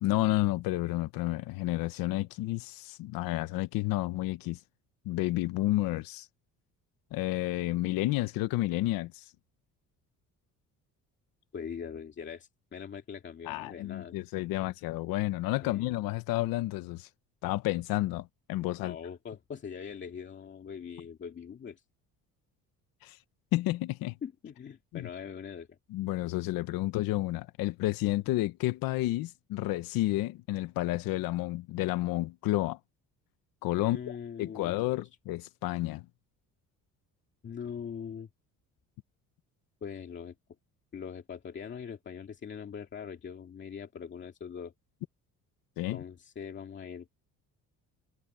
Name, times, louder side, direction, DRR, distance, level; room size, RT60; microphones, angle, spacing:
voice 1, 0.0-4.6 5.1-6.3 7.1-9.2 13.5-17.1 17.4-19.0 23.0-23.2 23.5-24.1 24.9-25.1 25.9-32.8 33.6-34.0 34.4-36.0 45.8-46.0, left 17 dB, 80° left, 0.9 m, -30 dB
voice 2, 11.5-14.2 15.6-15.9 18.6-21.8 24.2-25.8 33.8-35.1 37.4-38.3 39.8-40.3 40.9-44.7 45.9-47.1, left 7 dB, 35° left, 2.3 m, -42 dB
cardioid pair, 150°, 34 cm